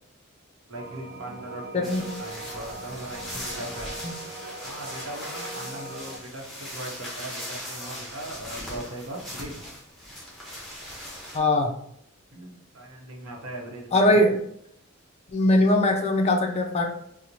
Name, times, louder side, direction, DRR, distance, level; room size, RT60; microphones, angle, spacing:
sound 1, 0.7-6.2, right 2 dB, 50° right, 0.3 m, -40 dB
voice 1, 0.7-4.0 4.6-9.6 12.3-14.3, right 1 dB, 75° right, 0 dB, 0.8 m, -39 dB
sound 2, 1.8-11.4, equal, ahead, 0.8 m, -39 dB
voice 2, 11.3-11.7 13.9-14.3 15.3-16.8, left 1 dB, 30° left, 3 dB, 0.4 m, -21 dB
4.4 x 2.0 x 2.6 m, 0.71 s
head